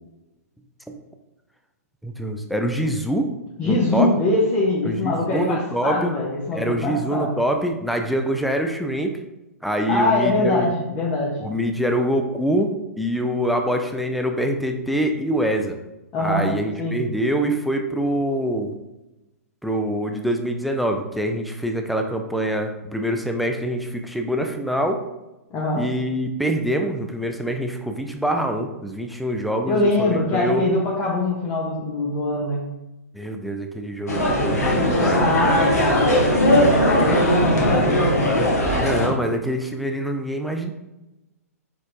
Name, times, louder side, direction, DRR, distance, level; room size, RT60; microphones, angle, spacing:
voice 1, 2.0-3.3 3.6-4.1 4.9-6.1 6.5-9.2 9.6-10.7 11.4-15.8 16.2-18.8 19.6-25.0 25.8-30.6 33.1-35.5 38.7-40.7, equal, ahead, 4 dB, 0.4 m, -25 dB
voice 2, 3.6-7.3 9.9-11.3 16.1-16.5 16.8-17.0 25.5-25.8 29.6-32.6 35.1-38.3, left 2 dB, 25° left, -5 dB, 0.9 m, -23 dB
sound 1, 34.1-39.1, equal, 75° left, 1.3 m, -19 dB
4.7 x 4.2 x 2.6 m, 1.0 s
figure-of-eight pair, 120°, 9 cm